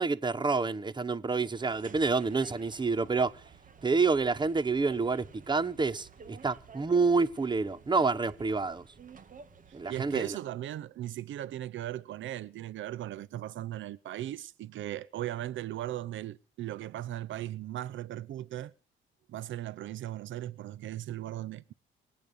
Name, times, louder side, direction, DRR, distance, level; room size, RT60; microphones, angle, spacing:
voice 1, 0.0-3.5 3.8-8.9 9.7-10.4, right 4 dB, 20° right, 1.1 m, -28 dB
sound 1, 1.5-10.3, right 5 dB, 40° right, 2.3 m, -52 dB
voice 2, 9.9-18.7 19.3-21.7, right 13 dB, 75° right, 0.7 m, -38 dB
25.5 x 8.8 x 5.3 m
cardioid pair, 90°, 20 cm